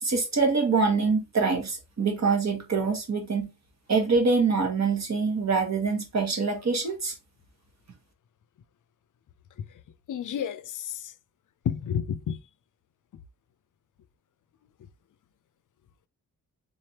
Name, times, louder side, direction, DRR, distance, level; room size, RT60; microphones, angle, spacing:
voice 1, 0.0-3.5 3.9-7.1, right 4 dB, 50° right, 1.2 m, -25 dB
voice 2, 10.1-11.1 11.6-12.4, left 8 dB, 60° left, 0.5 m, -30 dB
3.8 x 3.3 x 2.8 m
wide cardioid pair, 90°, 35 cm